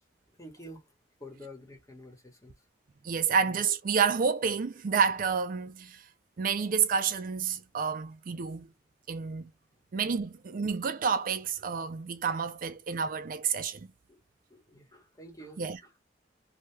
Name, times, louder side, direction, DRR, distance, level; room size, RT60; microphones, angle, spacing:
voice 1, 0.3-0.9 1.2-2.6 3.3-3.6 14.1-14.2 14.5-15.9, equal, 20° left, 1.0 m, -49 dB
voice 2, 3.0-6.0 6.4-8.7 9.1-9.5 9.9-13.9 15.6-15.8, right 6 dB, 50° right, 0.4 m, -29 dB
2.8 x 2.2 x 3.2 m
head